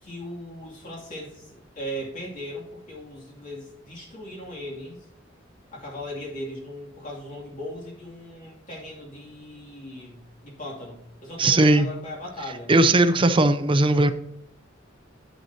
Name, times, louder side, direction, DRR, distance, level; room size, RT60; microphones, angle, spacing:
voice 1, 0.0-5.0 5.7-12.7, equal, 45° left, -3 dB, 2.6 m, -38 dB
voice 2, 11.4-11.9 12.7-14.1, right 2 dB, 25° right, 11 dB, 0.6 m, -18 dB
10.5 x 7.8 x 2.8 m, 0.76 s
head